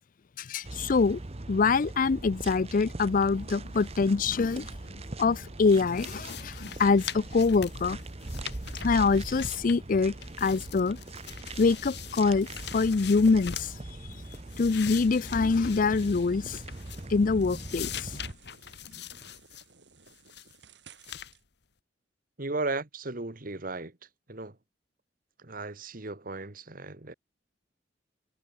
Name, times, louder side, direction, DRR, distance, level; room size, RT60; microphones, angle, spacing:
voice 1, 0.4-1.2 1.5-8.0 8.8-11.0 11.6-12.5 12.7-13.7 14.6-16.6 17.1-18.2, left 4 dB, 45° left, 0.4 m, -25 dB
sound 1, 0.6-18.3, right 2 dB, 35° right, 1.0 m, -41 dB
sound 2, 5.7-10.0 10.2-13.8 14.2-17.2 17.4-19.7 20.1-20.6 21.0-21.3, left 9 dB, 65° left, 1.6 m, -43 dB
sound 3, 11.0-21.4, right 7 dB, 70° right, 5.3 m, -60 dB
voice 2, 22.4-23.9 24.3-24.6 25.4-27.1, right 3 dB, 50° right, 1.7 m, -35 dB
head